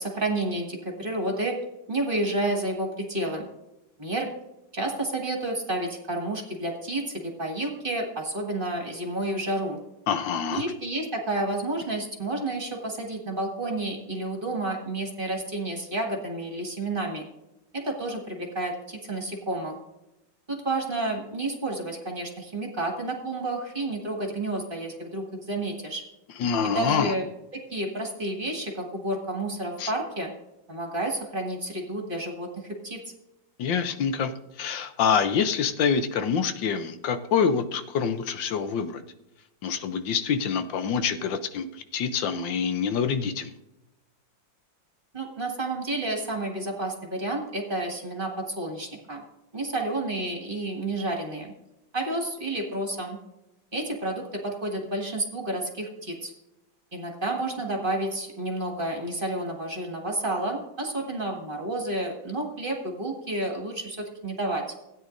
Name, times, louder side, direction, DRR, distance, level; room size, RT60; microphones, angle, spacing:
voice 1, 0.0-1.6 1.9-3.5 4.0-4.3 4.7-9.8 10.5-17.2 17.7-19.8 20.5-26.0 26.6-27.2 27.5-30.3 30.7-33.0 45.1-49.2 49.5-51.5 51.9-53.2 53.7-56.3 56.9-64.6, right 2 dB, 30° right, 1 dB, 1.7 m, -30 dB
voice 2, 10.1-10.6 26.4-27.1 29.8-29.9 33.6-34.3 34.6-39.0 39.6-41.7 41.9-43.5, left 6 dB, 75° left, 9 dB, 1.4 m, -26 dB
16.5 x 9.3 x 2.6 m, 0.91 s
omnidirectional pair, 2.1 m